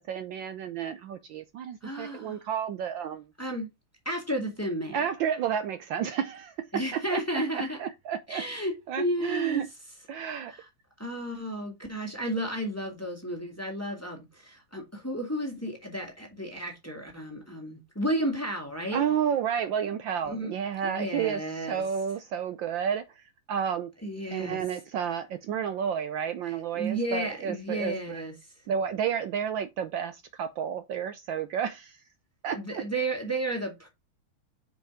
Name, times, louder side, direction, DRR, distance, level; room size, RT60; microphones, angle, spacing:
voice 1, 0.0-3.3 4.9-8.4 8.9-9.7 10.1-10.5 18.9-23.9 24.3-28.2 28.7-32.0 32.4-32.8, right 8 dB, 70° right, 1.3 m, -31 dB
voice 2, 1.8-2.4 3.4-3.7 4.1-5.0 6.7-7.8 8.3-9.6 10.5-10.7 11.0-19.0 20.3-20.5 20.8-21.8 24.0-24.6 26.7-28.3 32.5-33.9, right 1 dB, 5° left, 1.9 m, -32 dB
5.6 x 5.1 x 4.9 m
omnidirectional pair, 2.4 m